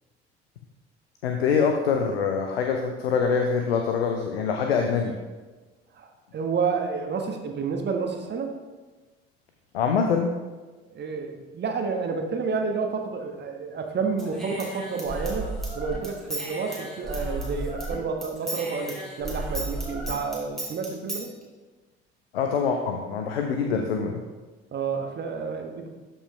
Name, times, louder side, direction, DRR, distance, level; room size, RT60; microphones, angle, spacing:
voice 1, 1.2-5.1 9.7-10.3 22.3-24.2, left 6 dB, 75° left, 4 dB, 0.6 m, -24 dB
voice 2, 5.9-8.5 10.9-15.5 15.7-21.3 24.7-25.9, right 5 dB, 35° right, 3 dB, 1.3 m, -30 dB
Human voice / Scissors, 14.2-17.9 18.2-21.2, right 2 dB, ahead, 2.6 m, -33 dB
12.5 x 5.5 x 3.2 m, 1.3 s
figure-of-eight pair, 55°, 31 cm